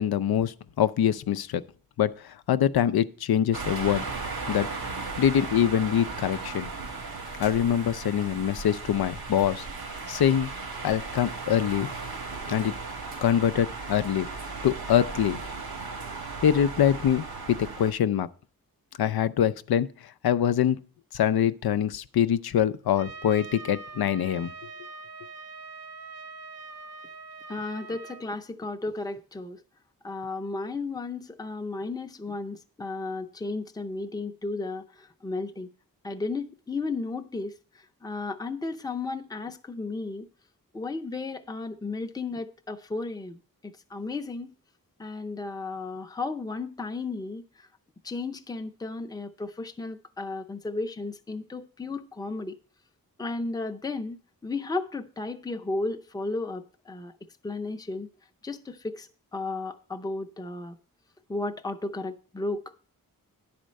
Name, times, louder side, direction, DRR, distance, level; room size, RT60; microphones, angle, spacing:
voice 1, 0.0-1.6 2.0-4.0 4.5-4.7 5.2-6.7 7.4-9.7 10.1-10.5 10.8-11.9 12.5-12.7 13.2-14.3 14.6-15.4 16.4-18.3 19.0-19.9 20.2-20.8 21.1-24.5, left 9 dB, 85° left, 0.5 m, -24 dB
sound 1, 3.5-17.9, right 4 dB, 80° right, 1.6 m, -36 dB
Trumpet, 23.0-28.3, right 4 dB, 45° right, 0.7 m, -43 dB
voice 2, 27.5-29.6 30.0-35.7 36.0-40.3 40.7-44.5 45.0-47.7 48.0-52.5 53.2-54.2 54.4-57.1 57.4-58.1 58.4-60.8 61.3-62.7, left 3 dB, 10° left, 0.6 m, -34 dB
10.5 x 4.3 x 6.3 m
wide cardioid pair, 65°, 36 cm